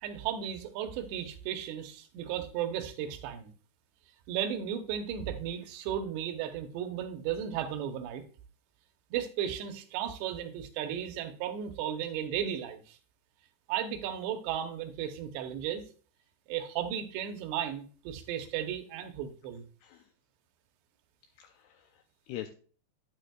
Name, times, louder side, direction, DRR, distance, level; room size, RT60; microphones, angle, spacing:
voice 1, 0.0-3.5 4.3-8.2 9.1-13.0 13.7-15.8 16.5-19.6, right 9 dB, 75° right, 6 dB, 3.0 m, -35 dB
voice 2, 19.8-20.1 21.4-22.5, left 12 dB, 90° left, 5 dB, 2.3 m, -44 dB
9.4 x 9.2 x 2.3 m, 0.40 s
omnidirectional pair, 5.2 m